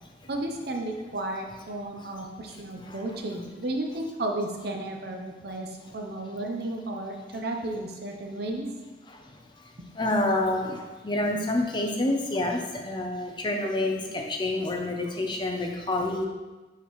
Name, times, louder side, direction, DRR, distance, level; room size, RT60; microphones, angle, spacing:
voice 1, 0.3-8.7 9.8-9.9, right 1 dB, 55° right, 2 dB, 0.8 m, -33 dB
voice 2, 2.5-3.0 9.1-9.3 9.6-9.7 9.9-16.2, left 2 dB, 25° left, 1 dB, 0.6 m, -28 dB
6.1 x 5.7 x 3.2 m, 1.2 s
head